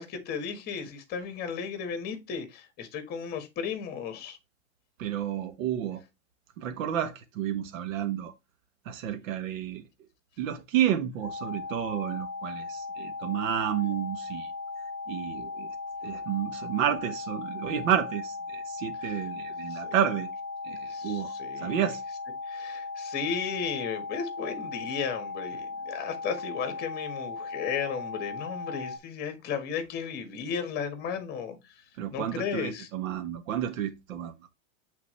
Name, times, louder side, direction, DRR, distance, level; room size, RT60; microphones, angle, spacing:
voice 1, 0.0-4.4 19.0-19.3 19.7-19.8 20.9-21.9 22.5-31.8 32.1-32.9, left 6 dB, 25° left, 1.6 m, -35 dB
voice 2, 5.0-6.0 6.6-8.3 8.9-9.8 10.4-14.5 15.1-15.7 16.0-20.3 20.6-22.0 32.0-34.3, right 10 dB, 80° right, 1.3 m, -30 dB
sound 1, 11.2-29.0, left 3 dB, 15° right, 1.4 m, -37 dB
8.5 x 4.1 x 3.2 m
supercardioid pair, 170°, 39 cm